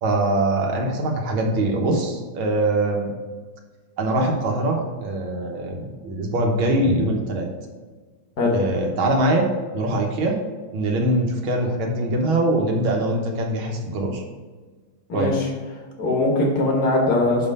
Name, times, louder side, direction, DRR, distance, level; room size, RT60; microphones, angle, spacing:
voice 1, 0.0-3.1 4.0-7.5 8.5-10.4 10.7-14.2 15.1-15.3, right 1 dB, 75° right, 1 dB, 1.9 m, -23 dB
voice 2, 15.1-15.5 16.0-17.5, left 2 dB, 50° left, -1 dB, 1.7 m, -20 dB
5.7 x 5.5 x 5.3 m, 1.4 s
omnidirectional pair, 2.3 m